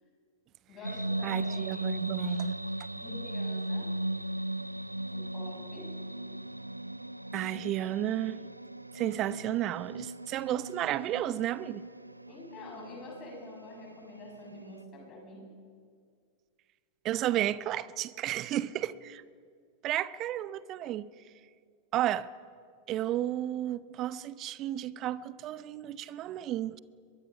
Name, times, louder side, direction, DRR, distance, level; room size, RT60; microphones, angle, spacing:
voice 1, 0.7-2.1 2.9-3.9 5.1-5.9 12.3-15.4, left 2 dB, 30° left, 7.4 m, -47 dB
sound 1, 0.8-14.8, right 1 dB, 85° right, 0.4 m, -37 dB
voice 2, 1.2-2.6 7.3-8.4 8.9-11.9 17.0-19.2 19.8-21.1 21.9-22.3 22.9-26.8, right 13 dB, 35° right, 0.7 m, -32 dB
23.0 x 22.0 x 5.8 m
figure-of-eight pair, 90°, 0 cm